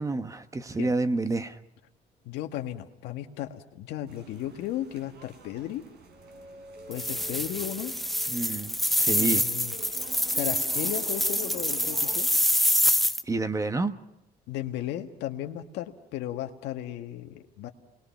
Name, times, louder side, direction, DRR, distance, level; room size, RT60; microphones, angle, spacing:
voice 1, 0.0-1.6 8.3-9.4 13.2-13.9, right 3 dB, 20° right, 10 dB, 1.3 m, -29 dB
voice 2, 2.3-5.8 6.9-7.9 9.1-9.7 10.3-12.3 14.5-17.7, left 12 dB, 85° left, 6 dB, 1.7 m, -35 dB
sound 1, 4.1-12.2, right 3 dB, 75° right, 4.6 m, -47 dB
sound 2, 6.9-13.2, equal, ahead, 0.8 m, -26 dB
28.0 x 21.0 x 5.9 m, 0.88 s
cardioid pair, 110°, 17 cm